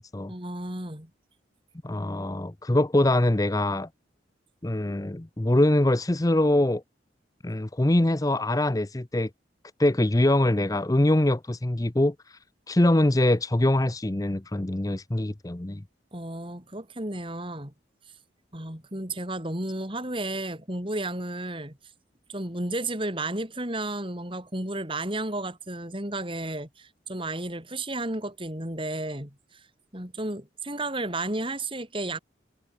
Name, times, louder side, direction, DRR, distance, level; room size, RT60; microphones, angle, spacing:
voice 1, 0.3-1.1 16.1-17.7 18.5-21.8 22.3-29.6 29.9-32.2, right 2 dB, 30° right, 5.0 m, -33 dB
voice 2, 1.8-3.9 4.6-6.8 7.4-9.3 9.8-12.4 12.7-15.8, left 1 dB, 20° left, 0.7 m, -23 dB
head